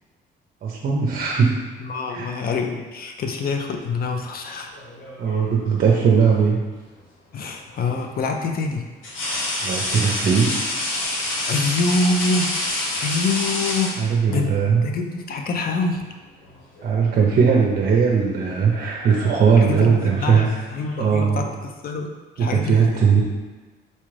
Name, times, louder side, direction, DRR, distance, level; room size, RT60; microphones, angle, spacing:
voice 1, 0.6-1.6 2.1-2.3 5.2-6.6 9.6-10.7 14.0-14.8 16.8-20.6 21.0-21.5 22.4-23.2, right 6 dB, 50° right, -1 dB, 0.5 m, -19 dB
voice 2, 1.8-4.7 7.3-8.9 11.5-14.5 14.8-16.1 19.6-23.2, left 3 dB, 50° left, 3 dB, 0.5 m, -26 dB
sound 1, 4.7-5.6 7.3-7.5 9.0-14.5 15.7-15.9 16.3-17.0 17.3-17.7 18.5-21.2, left 2 dB, 85° left, 0.8 m, -28 dB
4.1 x 2.4 x 3.2 m, 1.3 s
cardioid pair, 90°, 20 cm